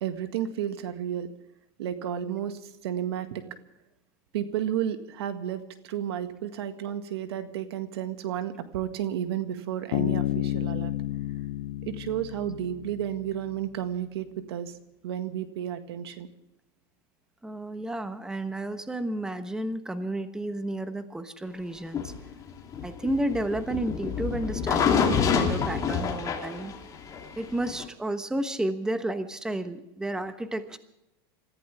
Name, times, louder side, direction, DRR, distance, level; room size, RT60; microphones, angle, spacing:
voice 1, 0.0-1.3 1.8-3.4 4.3-10.9 11.9-14.7 15.0-16.3, right 10 dB, 80° right, 8 dB, 1.8 m, -32 dB
Bass guitar, 9.9-13.4, left 14 dB, 70° left, 0.6 m, -31 dB
voice 2, 17.4-22.1 22.8-26.7 27.4-30.8, right 1 dB, 5° right, 9 dB, 1.1 m, -31 dB
sound 1, 21.9-27.8, left 6 dB, 25° left, 3.0 m, -27 dB
27.0 x 15.0 x 3.5 m, 0.87 s
supercardioid pair, 140°, 13 cm